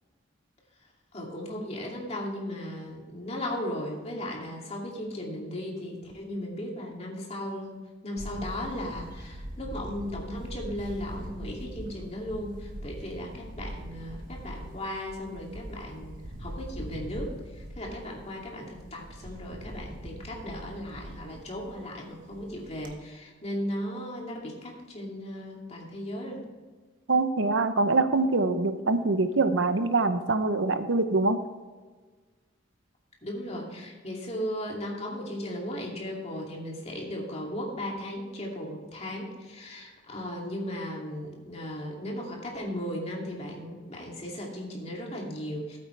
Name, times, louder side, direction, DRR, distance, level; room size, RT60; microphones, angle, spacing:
voice 1, 1.1-26.4 33.2-45.8, left 1 dB, 35° left, -2 dB, 2.6 m, -36 dB
Camera, 8.2-22.9, equal, 50° right, 1.2 m, -42 dB
voice 2, 27.1-31.4, right 3 dB, 85° right, 10 dB, 0.8 m, -24 dB
14.0 x 8.7 x 3.3 m, 1.4 s
head